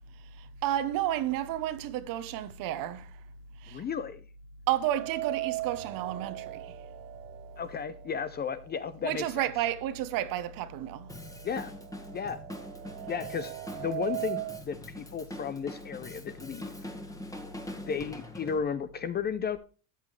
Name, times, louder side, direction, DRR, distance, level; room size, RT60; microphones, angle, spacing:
voice 1, 0.4-3.2 3.6-3.8 4.7-6.7 9.0-11.1, right 12 dB, 50° right, 1.1 m, -31 dB
voice 2, 3.7-4.2 7.6-9.5 11.4-11.7 12.1-12.4 13.1-16.7 17.9-19.6, left 7 dB, 25° left, 0.6 m, -34 dB
sound 1, 4.8-8.9 9.2-9.3 10.3-10.4 10.8-14.6, right 17 dB, 85° right, 1.1 m, -39 dB
Drum kit, 11.1-18.6, left 1 dB, 10° left, 1.6 m, -43 dB
13.5 x 9.0 x 3.3 m
supercardioid pair, 135°, 43 cm